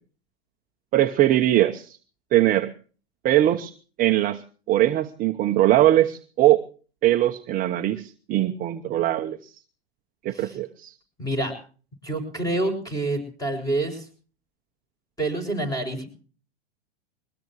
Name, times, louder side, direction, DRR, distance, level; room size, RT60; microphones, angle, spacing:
voice 1, 0.9-2.0 2.3-2.7 3.2-3.7 4.0-4.4 4.7-6.6 7.0-9.5 10.2-10.9, right 14 dB, 30° right, 5 dB, 0.9 m, -21 dB
voice 2, 11.2-11.5 12.0-14.0 15.2-16.0, right 2 dB, 10° left, 7 dB, 6.7 m, -27 dB
22.0 x 19.5 x 3.1 m, 0.40 s
hypercardioid pair, 120°, 30 cm